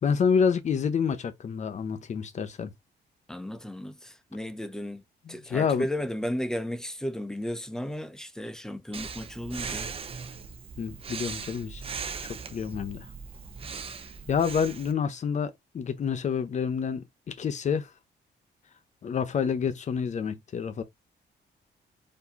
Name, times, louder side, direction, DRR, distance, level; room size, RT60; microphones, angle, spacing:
voice 1, 0.0-2.7 5.3-5.9 10.8-11.8 12.5-13.1 14.3-17.9 19.0-20.8, left 6 dB, 40° left, 0.7 m, -28 dB
voice 2, 3.3-5.0 5.3-9.9, equal, 5° left, 0.5 m, -34 dB
Breathing, 8.9-14.9, right 5 dB, 30° right, 0.6 m, -39 dB
4.8 x 2.7 x 4.0 m
wide cardioid pair, 160°, 18 cm